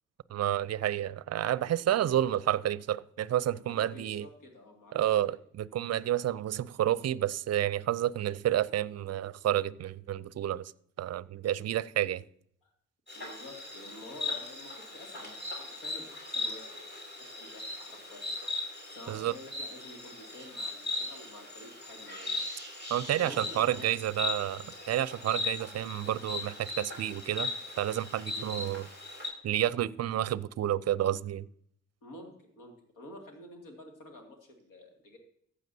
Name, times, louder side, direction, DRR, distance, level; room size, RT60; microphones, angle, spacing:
voice 1, 0.3-4.3 4.9-10.7 11.0-12.2 19.1-19.3 22.9-27.5 27.8-28.9 29.4-31.5, right 12 dB, 50° right, 0.5 m, -30 dB
voice 2, 3.7-5.0 5.3-5.4 11.6-11.7 12.6-12.7 13.1-18.6 18.9-22.4 23.1-23.9 28.3-28.5 32.0-35.2, left 1 dB, 75° left, 2.3 m, -50 dB
Insect, 13.1-29.3, left 2 dB, 30° left, 5.1 m, -38 dB
15.0 x 8.2 x 2.7 m
hypercardioid pair, 40°, 33 cm